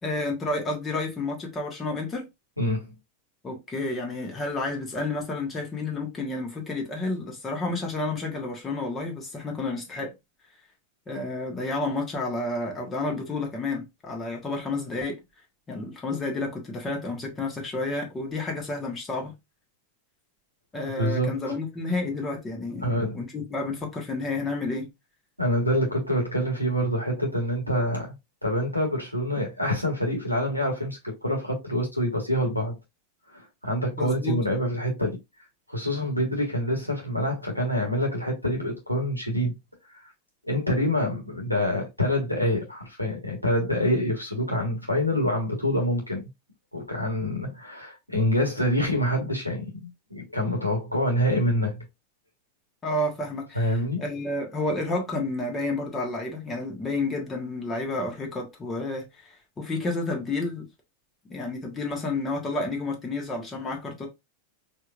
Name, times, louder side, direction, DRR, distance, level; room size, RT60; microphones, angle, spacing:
voice 1, 0.0-2.3 3.4-10.1 11.1-15.2 15.7-19.3 20.7-24.9 34.0-34.4 52.8-60.7 61.3-64.1, left 2 dB, 20° left, 1.4 m, -30 dB
voice 2, 2.6-2.9 21.0-21.5 22.8-23.2 25.4-28.1 28.4-32.8 33.3-35.2 35.7-39.5 40.5-46.2 46.7-51.8 53.5-54.0, equal, 90° left, 1.5 m, -26 dB
4.4 x 2.9 x 2.5 m
figure-of-eight pair, 90°, 0 cm